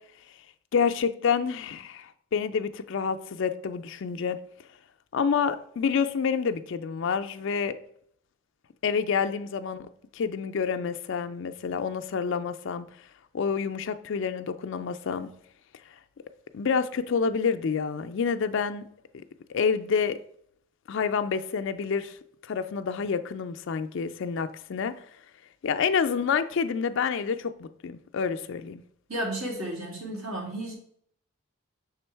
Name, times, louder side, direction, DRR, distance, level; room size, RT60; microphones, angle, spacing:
voice 1, 0.7-4.4 5.1-7.8 8.8-12.9 13.3-15.3 16.5-18.9 19.1-19.2 19.5-20.2 20.9-22.2 22.4-24.9 25.6-28.8, left 6 dB, 60° left, 0.4 m, -28 dB
voice 2, 29.1-30.7, right 1 dB, 75° right, 2.1 m, -33 dB
6.1 x 3.6 x 4.4 m
head